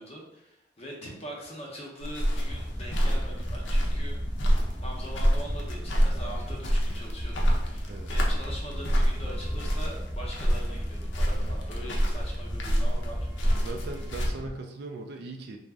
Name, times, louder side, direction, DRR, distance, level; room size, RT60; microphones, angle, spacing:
voice 1, 0.0-4.2 4.8-13.7, equal, 35° left, -2 dB, 0.6 m, -42 dB
sound 1, 2.0-14.3, equal, 85° left, 0.5 m, -28 dB
sound 2, 2.5-14.5, equal, 10° right, 0.6 m, -36 dB
voice 2, 13.6-15.6, right 3 dB, 60° right, 4 dB, 0.3 m, -39 dB
2.5 x 2.0 x 3.4 m, 0.81 s
head